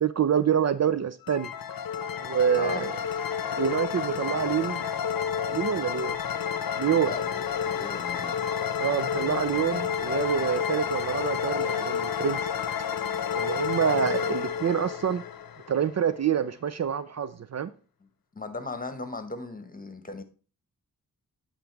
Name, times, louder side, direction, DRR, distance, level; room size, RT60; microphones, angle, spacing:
voice 1, 0.0-1.5 2.2-2.9 3.6-4.9 5.5-6.2 6.8-7.1 8.8-12.4 13.3-15.2 15.7-17.7, right 8 dB, 50° right, 0.5 m, -26 dB
sound 1, 1.2-16.0, left 7 dB, 75° left, 0.7 m, -30 dB
voice 2, 2.5-2.9 7.0-8.4 18.3-20.2, left 3 dB, 25° left, 1.2 m, -37 dB
9.0 x 3.9 x 4.6 m
cardioid pair, 70°, 35 cm